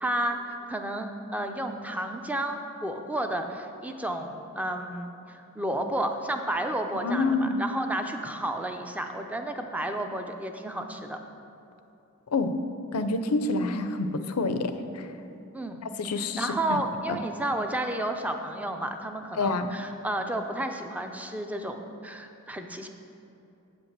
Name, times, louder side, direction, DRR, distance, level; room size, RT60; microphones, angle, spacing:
voice 1, 0.0-11.2 15.5-15.8 16.2-22.9, right 1 dB, 5° right, 5 dB, 0.5 m, -32 dB
voice 2, 7.0-7.6 12.3-12.5 12.9-14.7 16.0-16.8 17.1-17.2 19.4-19.7, left 3 dB, 85° left, 9 dB, 0.6 m, -27 dB
8.0 x 5.3 x 7.4 m, 2.8 s
head